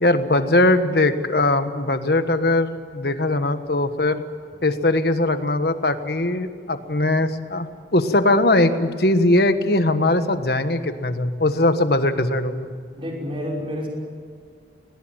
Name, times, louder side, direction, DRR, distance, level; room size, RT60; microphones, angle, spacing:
voice 1, 0.0-4.2 4.6-7.7 7.9-12.7, left 2 dB, 60° left, 9 dB, 1.4 m, -20 dB
voice 2, 13.0-13.9, equal, 30° right, -1 dB, 5.7 m, -29 dB
21.0 x 20.5 x 9.1 m, 2.1 s
head